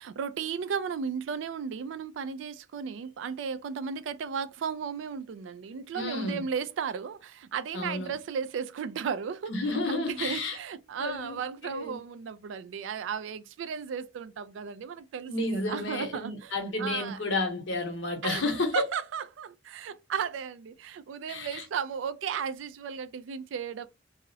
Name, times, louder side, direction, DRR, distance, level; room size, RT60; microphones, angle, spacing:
voice 1, 0.0-17.2 18.2-23.9, right 6 dB, 85° right, 0.3 m, -35 dB
voice 2, 5.9-6.4 7.7-8.1 9.5-10.6 11.0-11.4 11.6-12.0 15.3-18.8 21.3-21.6, left 2 dB, 80° left, 0.9 m, -31 dB
2.4 x 2.0 x 2.6 m
head